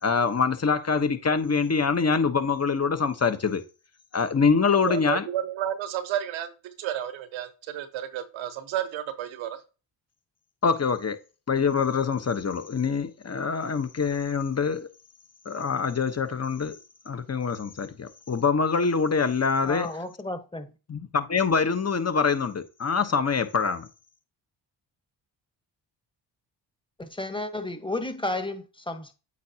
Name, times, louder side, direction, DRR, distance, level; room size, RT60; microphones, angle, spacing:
voice 1, 0.0-3.6 4.1-5.3 10.6-11.2 11.5-14.9 15.4-16.8 17.1-19.9 20.9-23.9, left 5 dB, 35° left, 1.1 m, -25 dB
voice 2, 4.8-9.6, right 11 dB, 90° right, 1.1 m, -31 dB
voice 3, 19.6-20.7 27.0-29.1, left 2 dB, 10° left, 1.3 m, -32 dB
8.5 x 4.8 x 2.9 m
supercardioid pair, 55°, 46 cm